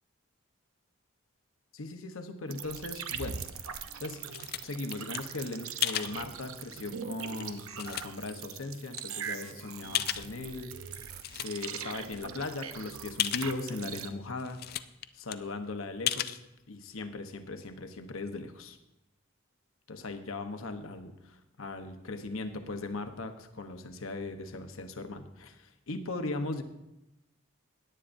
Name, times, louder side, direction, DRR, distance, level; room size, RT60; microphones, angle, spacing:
voice 1, 1.7-3.4 4.0-4.2 4.6-10.7 11.4-14.6 15.1-16.4 16.7-18.8 19.9-26.6, left 3 dB, 75° left, 7 dB, 0.9 m, -38 dB
sound 1, 2.5-14.1, right 7 dB, 80° right, 0.7 m, -41 dB
sound 2, 3.7-5.2 5.8-6.1 6.8-6.9 7.4-8.3 9.0-9.1 9.9-10.6 10.9-11.7 12.1-12.2 12.4-12.5 13.2-13.5 14.1-14.2 14.4-15.1 15.3-15.4 16.1-16.4, left 11 dB, 45° left, 0.3 m, -33 dB
17.0 x 10.0 x 2.6 m, 0.90 s
head